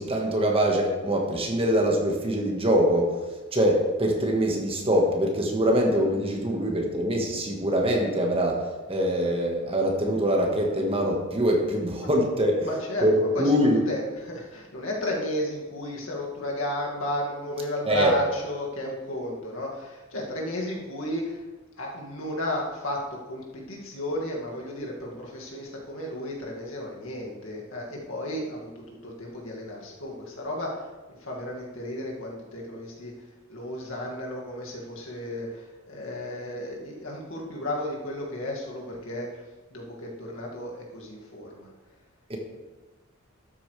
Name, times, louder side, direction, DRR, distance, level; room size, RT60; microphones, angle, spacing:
voice 1, 0.0-3.1 3.5-8.6 8.9-12.7 13.0-13.8 17.9-18.1 42.3-42.4, equal, 25° right, 1 dB, 1.5 m, -23 dB
voice 2, 12.6-21.4 21.8-30.9 31.2-33.1 33.5-39.4 39.7-41.7, left 1 dB, 70° left, -2 dB, 2.2 m, -33 dB
12.5 x 8.5 x 3.3 m, 1.2 s
head